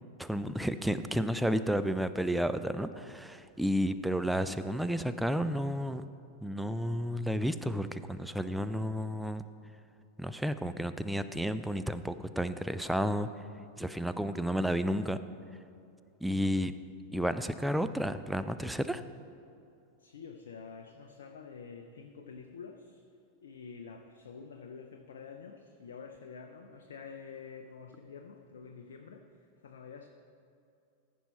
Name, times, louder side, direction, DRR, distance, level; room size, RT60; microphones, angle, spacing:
voice 1, 0.2-6.0 6.4-9.4 10.2-13.3 13.8-15.2 16.2-16.7 17.1-19.0, equal, ahead, 11 dB, 0.3 m, -31 dB
voice 2, 20.0-23.0 23.4-30.1, left 5 dB, 65° left, 5 dB, 0.5 m, -48 dB
14.5 x 5.4 x 4.3 m, 2.6 s
figure-of-eight pair, 90°, 0 cm